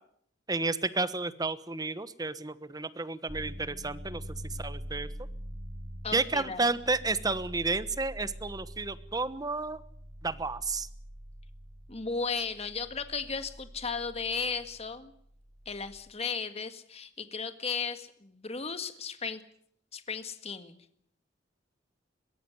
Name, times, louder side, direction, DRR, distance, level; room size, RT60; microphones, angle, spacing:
voice 1, 0.5-4.2 4.6-5.1 6.1-9.8 10.2-10.9, right 3 dB, 20° right, 14 dB, 1.1 m, -31 dB
sound 1, 3.3-16.0, equal, 40° right, 6.6 m, -45 dB
voice 2, 6.0-6.6 11.9-15.1 15.6-19.4 19.9-20.8, left 5 dB, 35° left, 9 dB, 1.8 m, -35 dB
22.5 x 16.0 x 9.6 m, 0.68 s
head